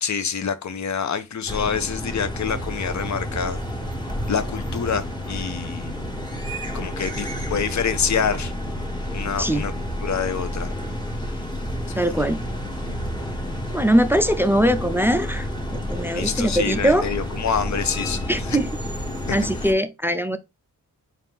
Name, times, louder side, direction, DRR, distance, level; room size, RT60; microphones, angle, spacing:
voice 1, 0.0-3.6 4.3-6.0 6.7-8.5 9.1-9.7 10.0-10.7 11.9-12.2 16.1-18.6 19.3-19.4, left 6 dB, 50° left, 0.7 m, -26 dB
sound 1, 1.5-19.7, equal, 10° left, 1.3 m, -30 dB
voice 2, 12.0-12.4 13.7-15.5 15.9-17.1 18.3-18.7 19.3-20.4, equal, 5° right, 0.3 m, -21 dB
4.2 x 2.6 x 3.5 m
cardioid pair, 75°, 36 cm